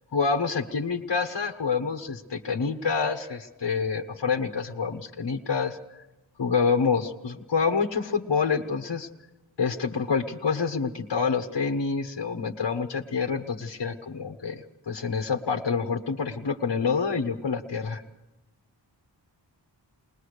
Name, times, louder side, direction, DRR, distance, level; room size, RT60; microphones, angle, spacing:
voice 1, 0.1-5.8 6.4-9.1 9.6-18.0, left 5 dB, 60° left, 3 dB, 1.3 m, -27 dB
21.0 x 20.5 x 6.6 m, 1.0 s
wide cardioid pair, 55°, 44 cm